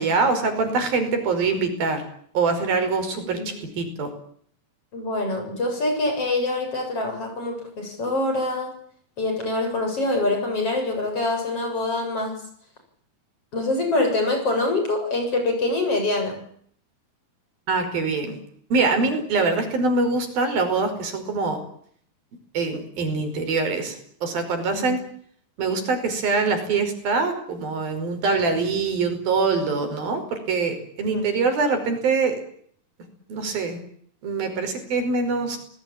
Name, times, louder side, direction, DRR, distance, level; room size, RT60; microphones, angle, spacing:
voice 1, 0.0-2.0 2.3-4.1 17.7-18.4 18.7-21.6 22.5-24.0 24.2-25.0 25.6-32.4 33.3-33.8 34.2-35.6, right 4 dB, 80° right, 7 dB, 7.0 m, -24 dB
voice 2, 3.3-3.7 4.9-8.7 9.2-12.4 13.5-16.4 24.7-24.9 31.0-31.3, left 2 dB, 40° left, 5 dB, 8.5 m, -25 dB
29.5 x 20.0 x 8.9 m, 0.63 s
omnidirectional pair, 4.1 m